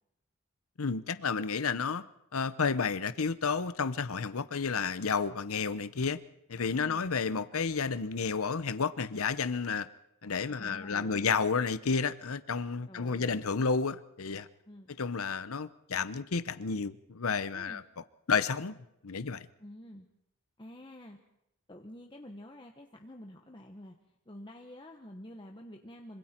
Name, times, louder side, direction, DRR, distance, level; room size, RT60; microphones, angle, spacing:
voice 1, 0.8-2.0 2.3-6.2 6.5-9.9 10.2-14.5 15.0-17.8 18.3-19.5, left 5 dB, 80° left, 14 dB, 0.8 m, -31 dB
voice 2, 10.5-11.4 12.9-13.5 14.7-14.9 17.5-17.8 19.6-20.1 20.6-21.2 21.7-24.0 24.3-26.2, left 1 dB, 20° left, 2 dB, 1.2 m, -48 dB
26.0 x 25.5 x 4.5 m, 0.84 s
head